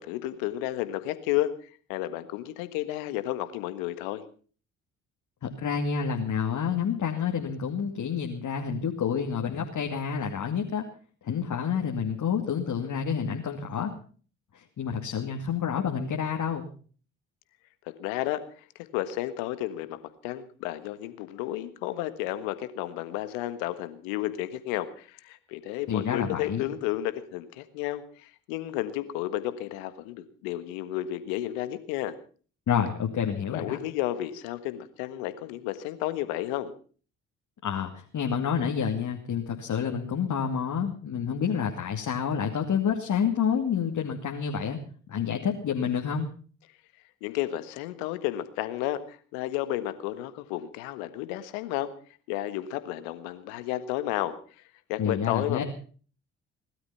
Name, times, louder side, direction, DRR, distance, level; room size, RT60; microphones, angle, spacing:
voice 1, 0.0-4.2 18.0-18.7 18.9-32.1 33.5-36.7 47.2-51.9 52.3-54.3 54.9-55.6, left 14 dB, 80° left, 12 dB, 1.6 m, -32 dB
voice 2, 5.4-10.8 11.2-13.9 14.5-16.6 25.9-26.7 32.7-33.8 37.6-44.8 45.1-46.3 55.0-55.6, left 7 dB, 55° left, 1 dB, 2.6 m, -28 dB
20.0 x 12.5 x 5.7 m, 0.43 s
hypercardioid pair, 50°, 37 cm